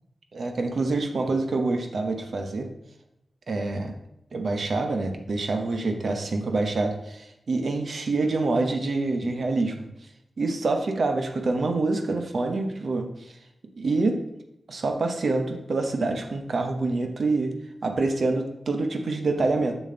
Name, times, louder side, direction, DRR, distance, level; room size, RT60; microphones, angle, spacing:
voice 1, 0.3-2.7 3.5-3.9 4.3-9.9 10.4-13.1 13.8-14.2 14.7-17.5 17.8-19.8, right 3 dB, 65° right, 5 dB, 0.9 m, -26 dB
6.9 x 6.2 x 3.8 m, 0.86 s
wide cardioid pair, 105°, 0 cm